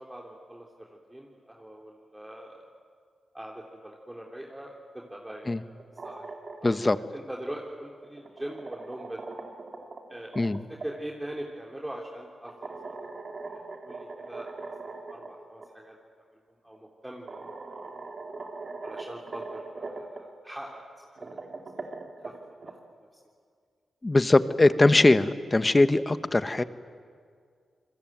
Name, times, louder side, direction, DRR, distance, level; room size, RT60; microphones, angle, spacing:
voice 1, 0.0-2.6 3.3-5.6 6.0-6.2 6.6-9.2 10.1-10.3 10.7-12.7 13.5-16.0 16.3-17.5 17.9-18.0 18.8-20.8 21.5-22.3 22.6-22.7, right 1 dB, 10° right, -1 dB, 3.4 m, -42 dB
sound 1, 5.7-6.9 8.0-10.9 12.5-15.3 15.6-15.7 16.7-16.8 17.3-20.2 21.0-22.7, right 3 dB, 55° right, 3.4 m, -40 dB
voice 2, 6.6-7.0 10.4-10.6 24.0-26.6, left 2 dB, 30° left, 12 dB, 1.3 m, -21 dB
28.0 x 21.0 x 9.3 m, 2.1 s
supercardioid pair, 50°, 0 cm